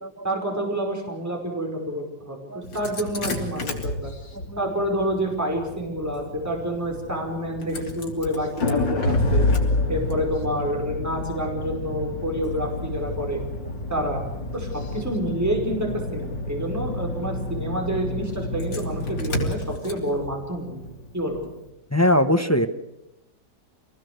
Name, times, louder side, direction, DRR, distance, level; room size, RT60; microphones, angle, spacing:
voice 1, 0.2-4.1 4.6-9.4 9.9-13.4 13.9-14.2 14.5-20.8 21.1-21.4, equal, 10° right, 1 dB, 5.0 m, -28 dB
Engine starting, 2.6-21.6, left 2 dB, 85° left, 3.9 m, -29 dB
voice 2, 21.9-22.7, left 1 dB, 10° left, 7 dB, 0.8 m, -21 dB
26.0 x 19.0 x 8.0 m, 0.90 s
omnidirectional pair, 1.9 m